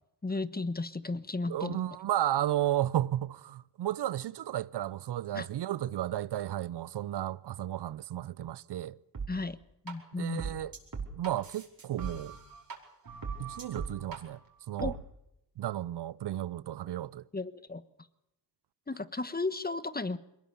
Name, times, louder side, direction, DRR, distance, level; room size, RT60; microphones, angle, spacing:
voice 1, 0.2-1.8 5.3-5.5 9.3-9.6 9.8-10.5 14.8-15.0 17.3-17.8 18.9-20.2, left 3 dB, 20° left, 1.3 m, -34 dB
voice 2, 1.5-9.0 10.2-10.7 11.1-12.4 13.4-14.4 14.7-15.0 15.6-17.2, right 12 dB, 70° right, 0.7 m, -33 dB
sound 1, 9.1-9.3 9.9-10.0 10.4-12.7 13.0-14.2 14.8-14.9, right 5 dB, 50° right, 5.0 m, -39 dB
22.0 x 19.5 x 7.0 m
supercardioid pair, 50°, 43 cm